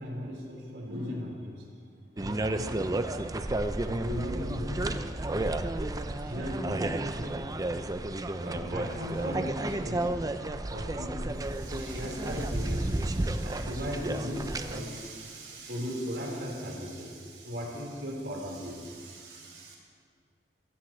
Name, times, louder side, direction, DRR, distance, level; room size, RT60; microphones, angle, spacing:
voice 1, 0.0-1.6 2.2-3.2 3.8-5.0 6.2-7.5 8.3-10.4 10.7-19.7, equal, 70° right, -3 dB, 4.4 m, -37 dB
sound 1, 2.2-14.8, right 2 dB, 20° right, 0.5 m, -32 dB
24.0 x 15.0 x 3.2 m, 2.1 s
head